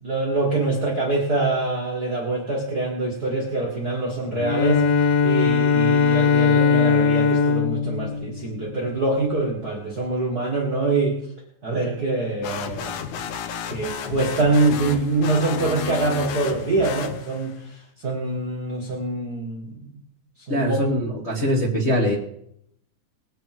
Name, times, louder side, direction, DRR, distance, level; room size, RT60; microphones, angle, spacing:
voice 1, 0.0-11.2 11.6-13.0 13.7-17.5 18.0-20.0 20.5-20.9, right 2 dB, 45° right, -1 dB, 1.3 m, -24 dB
Bowed string instrument, 4.4-9.0, left 5 dB, 90° left, 1.5 m, -20 dB
sound 1, 12.4-17.6, left 7 dB, 70° left, 2.1 m, -32 dB
voice 2, 20.5-22.2, equal, 30° left, -3 dB, 1.3 m, -22 dB
20.5 x 8.2 x 4.6 m, 0.72 s
omnidirectional pair, 4.0 m